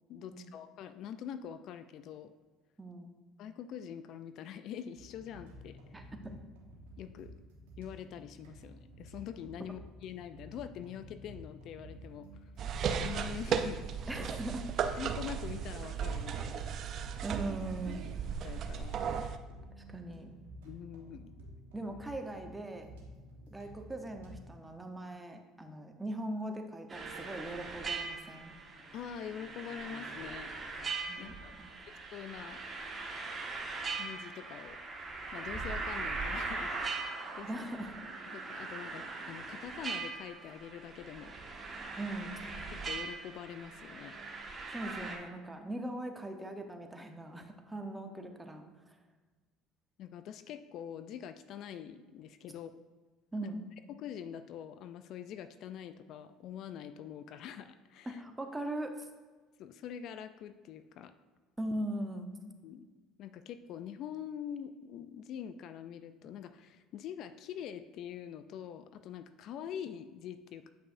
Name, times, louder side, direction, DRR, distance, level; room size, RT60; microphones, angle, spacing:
voice 1, 0.1-2.3 3.4-6.1 7.0-7.3 7.8-12.4 13.0-14.1 15.0-16.7 18.4-19.0 20.6-21.3 28.9-30.5 31.2-31.5 32.1-32.6 33.9-34.8 35.3-37.5 38.3-41.4 42.7-44.1 50.0-52.7 53.4-53.5 54.0-58.2 59.6-61.1 62.6-62.9 63.2-70.7, left 9 dB, 60° left, 11 dB, 0.3 m, -44 dB
voice 2, 2.8-3.1 5.9-6.0 14.1-14.7 17.2-18.0 19.9-20.3 21.7-22.9 23.5-28.5 31.1-31.7 37.4-38.0 42.0-42.4 44.7-49.0 53.3-53.6 58.1-59.1 61.6-62.3, right 1 dB, 10° right, 5 dB, 0.9 m, -40 dB
sound 1, 4.9-24.5, equal, 85° right, 1.2 m, -52 dB
sound 2, 12.6-19.4, right 7 dB, 55° right, 0.5 m, -35 dB
sound 3, 26.9-45.2, right 4 dB, 30° right, 1.5 m, -41 dB
8.7 x 5.5 x 2.6 m, 1.4 s
hypercardioid pair, 80°, 0 cm